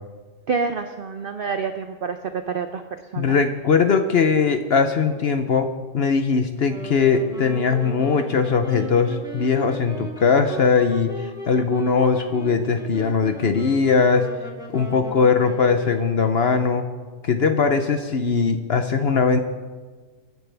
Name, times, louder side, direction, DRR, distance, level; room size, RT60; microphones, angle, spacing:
voice 1, 0.5-2.8 3.1-3.4, right 5 dB, 55° right, 7 dB, 0.7 m, -27 dB
voice 2, 3.2-5.7 5.9-14.2 14.7-16.8 17.2-19.4, left 5 dB, 55° left, 8 dB, 0.9 m, -20 dB
Wind instrument woodwind instrument, 6.6-16.3, equal, 5° right, 2.1 m, -37 dB
23.5 x 10.5 x 3.4 m, 1.4 s
omnidirectional pair, 1.4 m